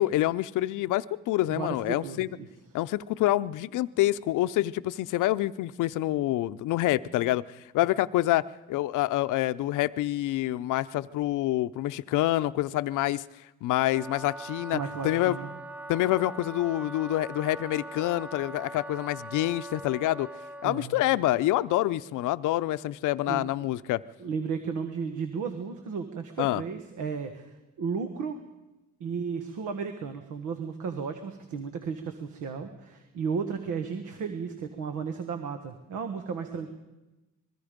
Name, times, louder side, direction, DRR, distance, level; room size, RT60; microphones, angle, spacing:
voice 1, 0.0-2.3 2.7-8.4 8.7-13.2 13.6-15.4 15.9-20.3 20.6-24.0 26.4-26.6, left 15 dB, 85° left, 14 dB, 0.7 m, -27 dB
voice 2, 1.5-2.5 14.7-15.5 20.6-21.0 23.3-23.4 24.2-28.4 29.0-36.7, right 5 dB, 85° right, 7 dB, 1.6 m, -34 dB
Wind instrument woodwind instrument, 13.8-20.9, right 1 dB, 5° right, 0.6 m, -41 dB
25.5 x 21.0 x 5.2 m, 1.0 s
cardioid pair, 90°, 30 cm